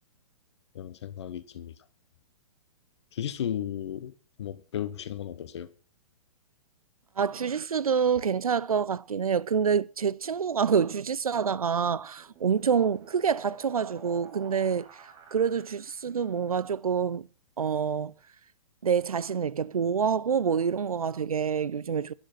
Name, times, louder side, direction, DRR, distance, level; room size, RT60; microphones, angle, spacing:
voice 1, 0.7-1.7 3.1-4.1 4.4-5.7, left 10 dB, 50° left, 0.9 m, -34 dB
voice 2, 7.2-15.0 15.3-17.3 17.6-18.1 18.8-22.1, right 7 dB, 75° right, 0.4 m, -27 dB
sound 1, 12.0-16.3, right 6 dB, 25° right, 1.3 m, -51 dB
11.0 x 6.7 x 5.8 m
figure-of-eight pair, 115°, 18 cm